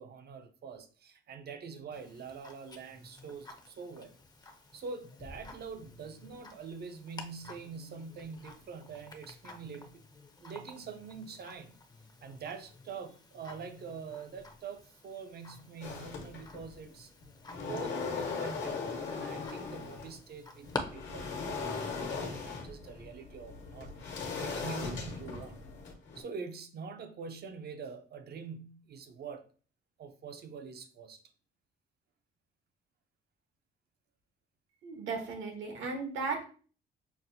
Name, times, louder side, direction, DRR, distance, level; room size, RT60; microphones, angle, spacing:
voice 1, 0.0-4.1 4.7-10.0 10.4-11.8 12.2-17.1 17.6-25.6 26.1-29.4 30.0-31.2, right 5 dB, 55° right, 0.6 m, -45 dB
Tick-tock, 1.9-20.8, left 3 dB, 20° left, 0.6 m, -49 dB
sound 1, 15.8-16.8 17.2-20.2 20.6-26.2, left 4 dB, 70° left, 1.2 m, -39 dB
voice 2, 34.8-36.5, right 4 dB, 75° right, 1.2 m, -36 dB
5.9 x 2.1 x 2.6 m
cardioid pair, 90°, 20 cm